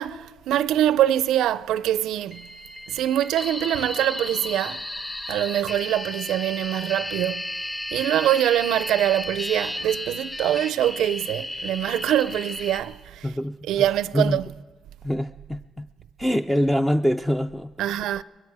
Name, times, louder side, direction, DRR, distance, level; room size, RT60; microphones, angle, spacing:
voice 1, 0.0-2.5 2.9-4.9 5.3-7.6 7.9-13.3 13.7-14.5 17.8-18.2, right 12 dB, 85° right, 0.4 m, -24 dB
sound 1, 2.3-12.8, left 1 dB, 25° left, 2.4 m, -34 dB
voice 2, 13.2-13.6 14.1-14.4 15.0-15.9 16.2-17.7, equal, 5° left, 0.4 m, -24 dB
22.0 x 12.5 x 4.8 m
cardioid pair, 90°, 0 cm